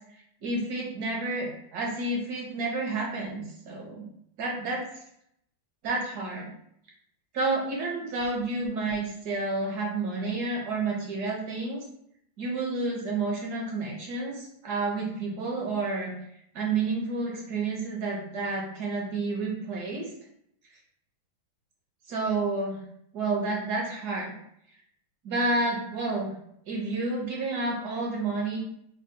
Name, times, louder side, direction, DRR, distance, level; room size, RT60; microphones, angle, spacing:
voice 1, 0.4-4.0 4.4-4.8 5.8-6.5 7.3-11.8 12.4-16.1 16.5-20.1 22.1-22.8 23.1-24.3 25.2-26.3 26.7-28.6, right 3 dB, 65° right, -1 dB, 1.0 m, -30 dB
3.7 x 2.0 x 3.5 m, 0.72 s
omnidirectional pair, 2.3 m